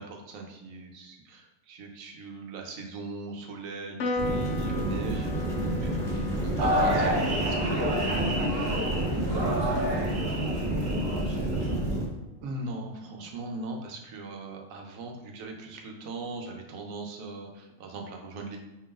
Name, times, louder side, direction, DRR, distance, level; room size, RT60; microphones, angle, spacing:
voice 1, 0.0-8.3 12.4-18.6, right 2 dB, 90° right, 2 dB, 1.1 m, -40 dB
Piano, 4.0-10.7, left 2 dB, 70° left, 0.9 m, -38 dB
sound 1, 4.2-12.0, right 1 dB, 5° left, 1.2 m, -29 dB
voice 2, 5.8-6.3 8.5-8.8 9.4-11.8, right 1 dB, 35° right, -7 dB, 1.7 m, -40 dB
sound 2, 6.6-11.7, equal, 50° right, 0.9 m, -29 dB
5.0 x 3.7 x 2.4 m, 1.0 s
omnidirectional pair, 1.4 m